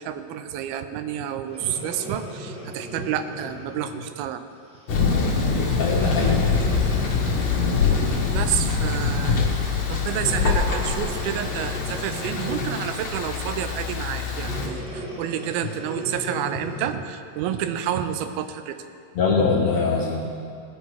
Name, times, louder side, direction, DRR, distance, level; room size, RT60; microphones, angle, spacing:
voice 1, 0.0-4.4 7.5-7.6 8.1-9.5 9.9-18.8, right 10 dB, 90° right, 9 dB, 2.6 m, -29 dB
Breathing, 1.5-4.1 4.7-5.0 5.8-8.7 10.1-13.0 14.4-17.1 17.7-17.8, left 1 dB, 10° right, 0.3 m, -35 dB
Thunder, 4.9-14.7, left 5 dB, 50° left, 1.8 m, -24 dB
voice 2, 5.7-6.4 8.9-9.0 19.1-20.3, left 4 dB, 70° left, -1 dB, 1.7 m, -23 dB
19.0 x 9.3 x 4.7 m, 2.4 s
omnidirectional pair, 4.2 m